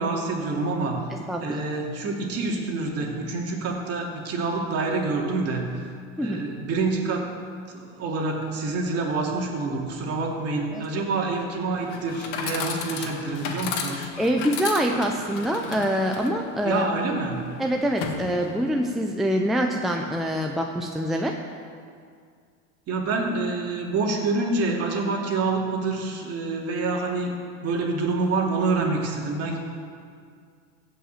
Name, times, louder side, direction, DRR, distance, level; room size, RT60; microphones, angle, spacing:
voice 1, 0.0-1.1 1.4-5.9 6.2-7.3 7.7-14.1 16.6-17.5 22.9-27.3 27.6-29.6, right 3 dB, 40° right, 0 dB, 2.6 m, -27 dB
voice 2, 1.3-1.6 6.2-6.4 10.7-10.8 14.2-16.9 17.6-21.3, equal, ahead, 1 dB, 0.6 m, -25 dB
Chatter / Coin (dropping), 11.8-18.8, left 6 dB, 65° left, 1.7 m, -35 dB
15.0 x 5.7 x 8.0 m, 2.2 s
supercardioid pair, 120°, 38 cm